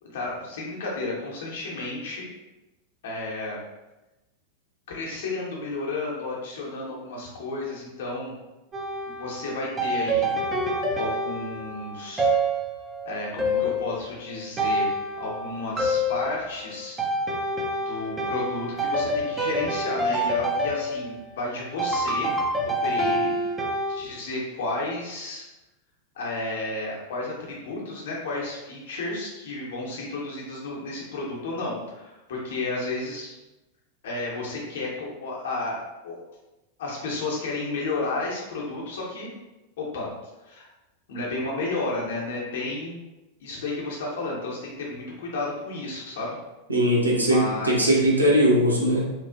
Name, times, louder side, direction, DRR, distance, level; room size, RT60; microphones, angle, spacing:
voice 1, 0.0-2.3 3.0-3.6 4.9-8.3 9.2-10.3 10.9-12.3 13.0-14.9 15.2-17.0 17.8-22.3 22.7-23.6 23.9-25.4 26.1-33.3 34.0-36.2 36.8-39.3 39.8-40.1 40.4-40.6 41.1-43.0 43.4-46.4 47.2-48.1, left 2 dB, 60° left, -3 dB, 0.8 m, -32 dB
sound 1, 8.7-24.0, right 1 dB, 20° right, 0.5 m, -27 dB
voice 2, 46.7-49.1, right 1 dB, 80° right, -3 dB, 0.6 m, -20 dB
2.9 x 2.4 x 2.4 m, 1.0 s
figure-of-eight pair, 90°, 0 cm